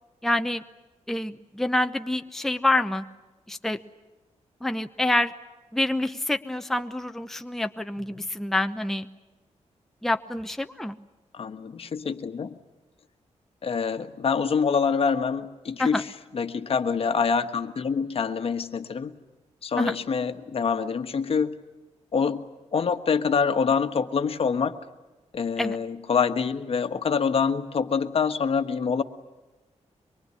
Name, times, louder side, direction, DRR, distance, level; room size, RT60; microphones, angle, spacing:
voice 1, 0.2-0.6 1.1-3.0 3.5-3.8 4.6-5.3 5.7-9.1 10.0-11.0 15.8-16.0 19.8-19.9 25.6-25.8, left 1 dB, 5° left, 7 dB, 0.8 m, -27 dB
voice 2, 11.3-12.5 13.6-19.1 19.6-21.6 22.1-22.4 22.7-24.8 25.3-29.0, left 6 dB, 55° left, 9 dB, 1.4 m, -26 dB
24.5 x 23.0 x 9.8 m, 1.1 s
wide cardioid pair, 125°, 12 cm